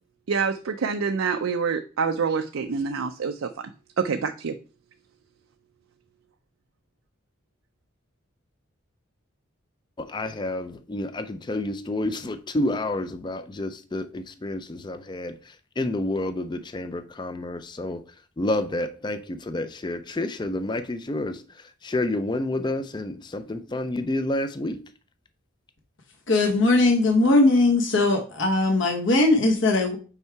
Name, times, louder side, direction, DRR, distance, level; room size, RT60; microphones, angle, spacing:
voice 1, 0.3-3.7 4.0-4.5, right 5 dB, 75° right, 0.5 m, -26 dB
voice 2, 10.0-15.3 15.8-18.0 18.4-21.4 21.8-24.8, left 1 dB, 20° left, 0.4 m, -29 dB
voice 3, 26.3-30.0, left 2 dB, 65° left, 1.1 m, -20 dB
5.6 x 4.6 x 4.5 m
head